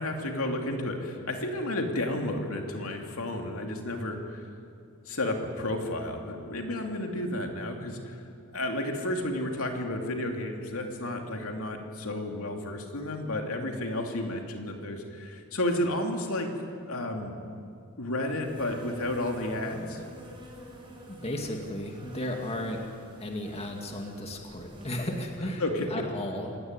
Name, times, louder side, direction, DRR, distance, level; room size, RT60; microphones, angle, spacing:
voice 1, 0.0-4.4 5.0-8.2 8.5-16.5 16.9-17.4 18.0-20.0 25.6-25.9, left 1 dB, 65° left, 3 dB, 2.9 m, -32 dB
Insect, 18.2-25.4, equal, 25° right, 6.4 m, -47 dB
voice 2, 21.1-22.9 23.2-25.6 25.9-26.5, left 1 dB, 30° left, 2 dB, 2.2 m, -34 dB
27.5 x 17.0 x 9.8 m, 2.5 s
head